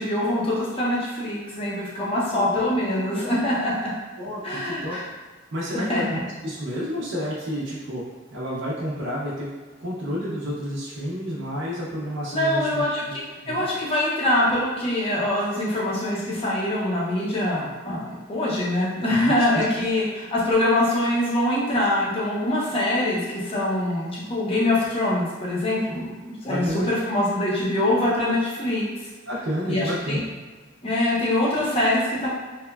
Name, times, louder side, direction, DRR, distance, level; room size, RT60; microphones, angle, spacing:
voice 1, 0.0-3.9 4.4-5.0 5.9-6.0 12.3-13.0 13.5-26.1 26.4-28.9 29.7-30.2 30.8-32.3, left 1 dB, 25° left, -6 dB, 0.5 m, -24 dB
voice 2, 2.3-2.8 3.1-3.3 4.2-5.0 5.5-8.0 8.3-9.5 9.8-13.2 13.4-13.7 19.1-19.6 26.5-26.9 29.3-30.2, equal, 60° right, -6 dB, 0.5 m, -30 dB
2.9 x 2.1 x 2.2 m, 1.3 s
head